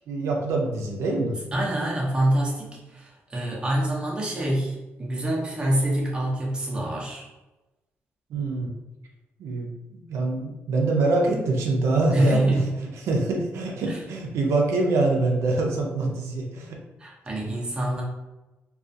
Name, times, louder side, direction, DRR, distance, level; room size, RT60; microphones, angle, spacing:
voice 1, 0.1-1.4 8.3-8.7 9.4-12.6 13.0-16.8, right 2 dB, 80° right, 0 dB, 0.4 m, -25 dB
voice 2, 1.5-7.3 12.1-12.8 13.8-14.0 17.0-18.0, right 1 dB, 20° right, -3 dB, 0.6 m, -26 dB
2.3 x 2.3 x 2.6 m, 1.0 s
cardioid pair, 145°, 5 cm